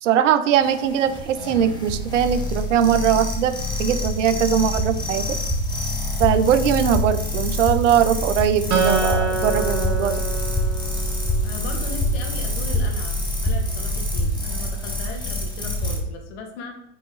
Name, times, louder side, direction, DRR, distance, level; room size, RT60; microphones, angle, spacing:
voice 1, 0.0-3.5 3.8-5.4 6.2-10.2, right 9 dB, 80° right, 11 dB, 0.8 m, -20 dB
sound 1, 0.6-16.0, left 1 dB, 10° left, 1.5 m, -26 dB
Acoustic guitar, 8.7-12.1, right 4 dB, 55° right, 1.8 m, -26 dB
voice 2, 11.4-16.8, left 2 dB, 70° left, 3 dB, 1.9 m, -37 dB
8.4 x 3.9 x 3.9 m, 0.75 s
hypercardioid pair, 110°, 36 cm